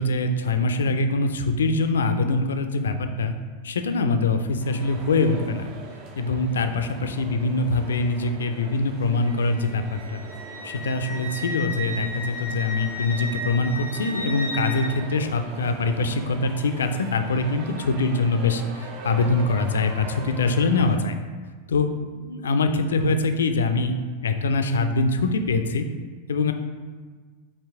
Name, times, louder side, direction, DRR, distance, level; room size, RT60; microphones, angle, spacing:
voice 1, 0.0-3.3 3.6-5.7 6.2-10.2 10.6-21.1 21.7-23.9 24.2-25.9 26.3-26.5, left 3 dB, 65° left, 7 dB, 0.3 m, -23 dB
sound 1, 4.6-21.0, right 4 dB, 40° right, 0.5 m, -41 dB
Wind instrument woodwind instrument, 9.2-14.9, left 1 dB, 85° right, 1.0 m, -34 dB
4.6 x 2.8 x 3.4 m, 1.5 s
figure-of-eight pair, 90°, 0 cm